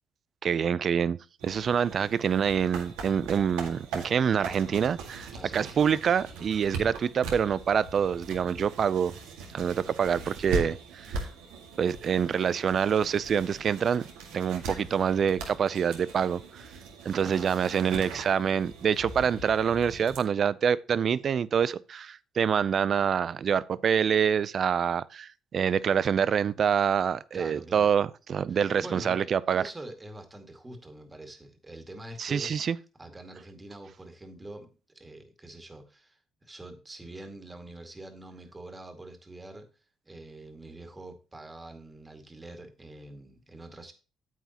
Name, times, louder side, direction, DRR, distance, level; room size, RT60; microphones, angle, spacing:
voice 1, 0.4-9.1 9.5-11.3 11.8-14.0 14.3-16.7 17.0-29.6 32.2-32.8, right 7 dB, 50° right, 0.5 m, -26 dB
sound 1, 1.4-20.2, right 3 dB, 85° right, 1.9 m, -40 dB
voice 2, 5.3-5.8 17.1-18.1 27.3-27.9 28.5-32.7 33.0-39.7 40.0-43.9, right 1 dB, 20° right, 2.1 m, -45 dB
9.2 x 8.1 x 3.0 m
supercardioid pair, 70°, 0 cm